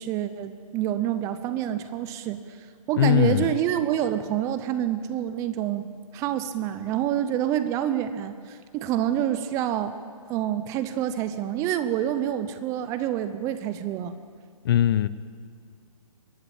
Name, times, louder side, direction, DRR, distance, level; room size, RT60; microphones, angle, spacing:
voice 1, 0.0-2.4 2.9-5.9 6.1-10.0 10.3-14.2, right 11 dB, 15° right, 12 dB, 0.7 m, -27 dB
voice 2, 3.0-3.5 14.6-15.1, left 11 dB, 40° left, 16 dB, 0.7 m, -20 dB
22.0 x 16.5 x 8.7 m, 2.1 s
hypercardioid pair, 150°, 19 cm